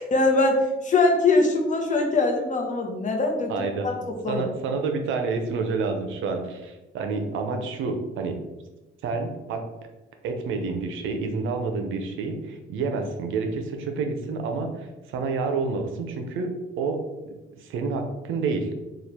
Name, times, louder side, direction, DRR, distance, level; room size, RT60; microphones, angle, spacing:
voice 1, 0.0-3.5 3.8-4.4, left 3 dB, 40° left, 2 dB, 0.8 m, -22 dB
voice 2, 3.5-3.9 4.3-8.4 9.0-9.6 10.2-16.5 16.8-17.0 17.6-18.7, right 4 dB, 85° right, 5 dB, 0.6 m, -28 dB
3.1 x 2.4 x 4.2 m, 1.1 s
cardioid pair, 90°, 20 cm